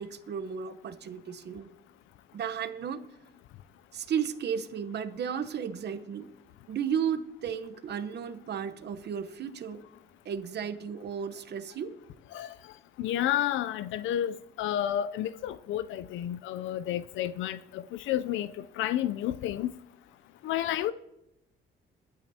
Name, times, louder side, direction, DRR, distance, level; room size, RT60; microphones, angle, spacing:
voice 1, 0.0-1.7 2.3-3.0 3.9-6.3 6.7-9.8 10.2-11.9, right 8 dB, 60° right, 0.9 m, -34 dB
voice 2, 13.0-19.7 20.4-20.9, left 11 dB, 80° left, 0.4 m, -31 dB
22.5 x 9.1 x 2.8 m
cardioid pair, 90°, 20 cm